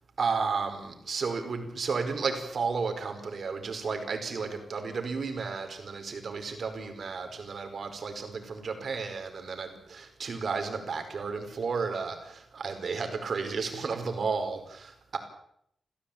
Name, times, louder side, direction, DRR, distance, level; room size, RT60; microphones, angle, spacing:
voice 1, 0.2-15.2, right 5 dB, 60° right, 6 dB, 4.9 m, -33 dB
28.5 x 15.5 x 8.7 m, 0.72 s
wide cardioid pair, 135°, 0 cm